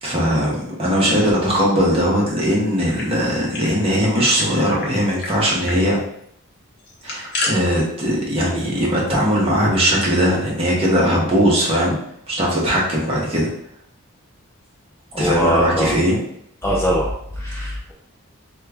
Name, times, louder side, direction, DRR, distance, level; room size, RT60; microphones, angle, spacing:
voice 1, 0.0-6.0 7.0-12.0 12.3-13.5 15.2-16.2, equal, 25° right, -4 dB, 0.8 m, -19 dB
sound 1, 2.7-3.8 4.0-4.1 4.4-4.9 5.2-5.3 5.6-5.8 6.8-7.5, left 2 dB, 50° left, 0.8 m, -29 dB
voice 2, 15.1-16.0 16.6-17.9, equal, 10° left, -5 dB, 0.4 m, -21 dB
3.0 x 2.3 x 3.4 m, 0.70 s
head